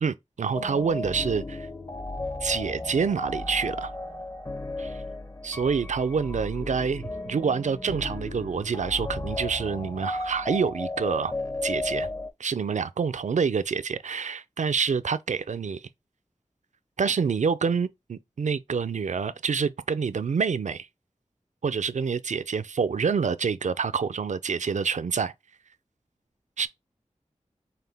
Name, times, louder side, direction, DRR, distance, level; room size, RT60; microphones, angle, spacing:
voice 1, 0.0-1.7 2.4-3.9 4.8-5.0 5.4-11.3 11.6-12.1 12.4-15.9 17.0-20.9 21.6-25.3 26.6-26.7, right 5 dB, 70° right, 0.4 m, -27 dB
sound 1, 0.5-12.3, left 2 dB, 25° left, 0.6 m, -34 dB
5.7 x 2.2 x 3.4 m
wide cardioid pair, 45°, 13 cm